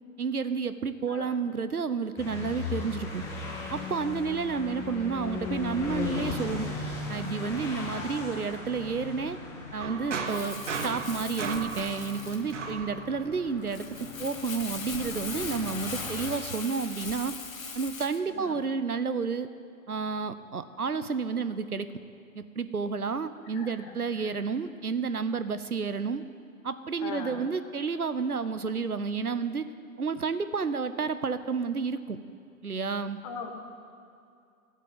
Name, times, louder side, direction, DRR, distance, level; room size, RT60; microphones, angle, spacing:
voice 1, 0.2-3.2 3.7-6.7 7.1-9.4 9.7-13.9 14.2-17.3 17.7-19.5 19.9-21.9 22.4-26.2 26.6-29.7 30.0-32.2 32.6-33.2, right 5 dB, 85° right, 12 dB, 0.8 m, -31 dB
sound 1, 2.2-16.4, left 4 dB, 5° left, 0.6 m, -38 dB
voice 2, 7.9-8.5 18.3-18.6 23.5-24.3 27.0-27.5 33.2-33.5, left 5 dB, 25° left, 4 dB, 1.3 m, -42 dB
sound 2, 9.8-13.6, right 4 dB, 55° right, 1.3 m, -36 dB
Crumpling crinkling, 10.3-18.2, left 5 dB, 70° left, 1.3 m, -40 dB
13.0 x 7.5 x 8.7 m, 2.4 s
figure-of-eight pair, 120°, 43 cm